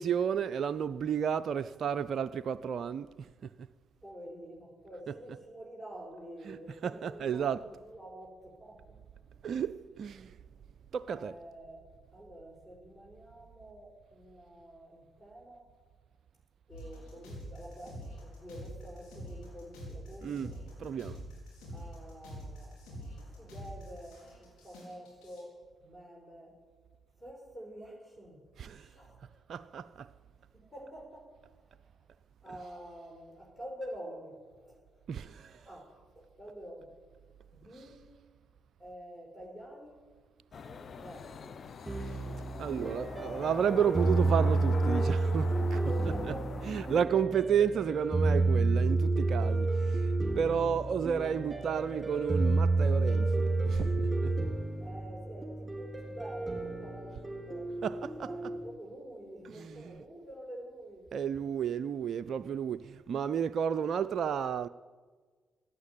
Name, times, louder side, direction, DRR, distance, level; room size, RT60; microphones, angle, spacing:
voice 1, 0.0-3.3 5.1-5.4 6.5-7.7 9.4-10.3 10.9-11.3 20.2-20.5 20.8-21.2 28.6-28.9 29.5-30.1 32.5-32.6 35.1-35.6 42.6-54.3 57.8-58.3 59.5-60.0 61.1-64.7, right 8 dB, 50° right, 0.4 m, -32 dB
voice 2, 4.0-9.0 11.1-11.8 12.1-15.7 16.7-20.6 21.7-26.6 27.2-28.4 28.7-29.2 30.5-31.3 32.4-35.0 35.6-36.9 37.5-38.0 38.8-40.0 40.5-41.6 45.9-47.3 54.8-57.8 58.2-61.0, right 1 dB, 15° left, 4.8 m, -48 dB
sound 1, 16.7-25.4, equal, 65° left, 4.8 m, -46 dB
sound 2, 40.5-47.0, left 6 dB, 45° left, 0.7 m, -43 dB
sound 3, 41.9-58.6, right 3 dB, 20° right, 4.7 m, -30 dB
15.5 x 9.1 x 9.9 m
figure-of-eight pair, 40°, 0 cm